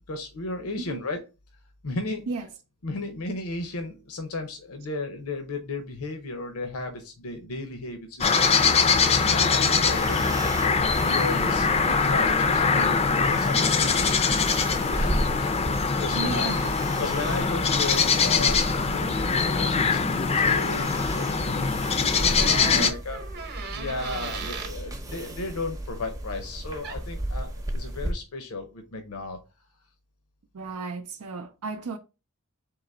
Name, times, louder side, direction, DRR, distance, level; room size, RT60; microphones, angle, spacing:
voice 1, 0.1-1.2 1.8-2.2 2.8-8.3 9.2-10.2 10.6-14.2 14.9-15.5 16.0-16.5 17.0-21.7 22.2-23.2 23.7-29.4, left 2 dB, 70° left, 0.7 m, -34 dB
voice 2, 2.3-2.6 16.1-16.7 22.7-22.9 30.5-32.0, right 4 dB, 80° right, 0.5 m, -34 dB
sound 1, 8.2-22.9, left 5 dB, 30° left, 0.4 m, -23 dB
sound 2, 9.8-28.1, right 1 dB, 15° right, 0.6 m, -35 dB
sound 3, 22.2-24.8 26.8-27.0, right 5 dB, 45° right, 0.9 m, -37 dB
3.8 x 2.9 x 4.2 m
head